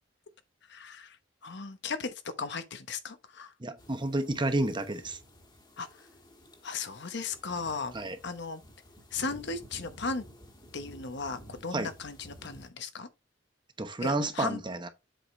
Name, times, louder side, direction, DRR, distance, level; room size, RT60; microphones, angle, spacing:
voice 1, 0.7-1.2 1.4-3.5 5.8-5.9 6.6-8.0 8.2-8.6 9.1-10.2 10.7-13.1 14.0-14.6, left 4 dB, 65° left, 1.0 m, -36 dB
voice 2, 3.6-5.2 7.9-8.2 11.7-11.9 13.8-14.9, right 2 dB, 25° right, 1.0 m, -30 dB
sound 1, 3.8-12.7, equal, 25° left, 1.7 m, -53 dB
7.8 x 5.0 x 3.8 m
head